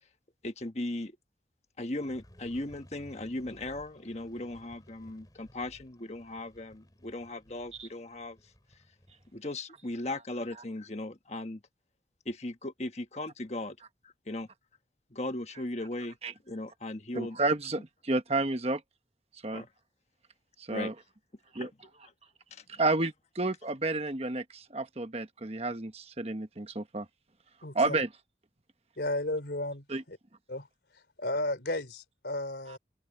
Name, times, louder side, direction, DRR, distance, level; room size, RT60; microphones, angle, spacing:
voice 1, 0.4-1.1 1.8-8.4 9.3-11.6 12.2-13.8 14.3-14.5 15.1-16.2 16.5-17.4 19.5-19.7 20.7-20.9 21.6-21.7 22.5-22.6, left 1 dB, 40° left, 1.4 m, -37 dB
sound 1, 2.0-9.4, equal, 20° left, 6.2 m, -57 dB
voice 2, 17.1-18.8 19.4-19.6 20.7-20.9 21.5-21.7 22.7-27.1 27.7-28.1 29.9-30.0, right 2 dB, 35° right, 1.3 m, -30 dB
voice 3, 27.6-28.0 29.0-30.2 30.5-30.7 31.2-32.8, left 1 dB, 70° left, 3.3 m, -33 dB
open air
head